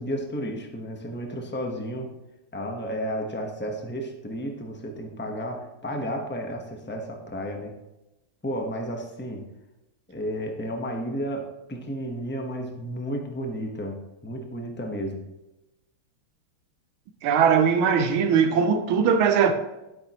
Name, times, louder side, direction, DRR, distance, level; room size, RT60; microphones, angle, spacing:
voice 1, 0.0-2.1 2.5-7.7 8.4-9.5 10.1-15.2, equal, 15° left, 0.3 m, -32 dB
voice 2, 17.2-19.5, right 7 dB, 75° right, 1.7 m, -20 dB
12.0 x 8.5 x 3.0 m
omnidirectional pair, 2.4 m